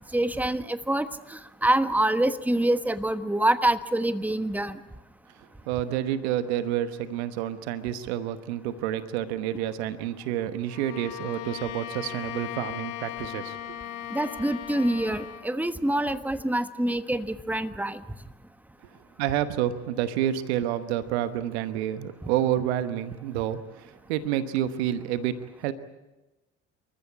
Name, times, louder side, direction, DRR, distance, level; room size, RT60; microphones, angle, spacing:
voice 1, 0.1-4.8 14.1-18.0, right 1 dB, 5° right, 11 dB, 1.3 m, -26 dB
voice 2, 5.7-13.8 19.2-25.7, right 11 dB, 80° right, 12 dB, 1.2 m, -29 dB
Bowed string instrument, 10.7-15.5, left 13 dB, 75° left, 1.3 m, -38 dB
28.0 x 14.5 x 8.5 m, 1.1 s
hypercardioid pair, 55°, 32 cm